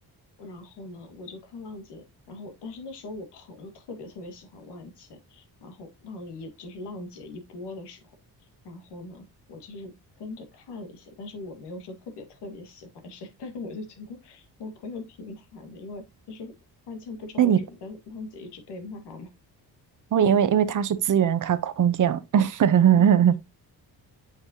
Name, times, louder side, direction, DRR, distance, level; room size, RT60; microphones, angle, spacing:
voice 1, 0.4-8.2 8.6-16.5 16.9-19.3 20.2-20.3 22.9-23.1, left 3 dB, 90° left, 2.0 m, -41 dB
voice 2, 20.1-23.4, right 9 dB, 50° right, 0.8 m, -20 dB
8.3 x 5.3 x 2.8 m
cardioid pair, 120°, 40 cm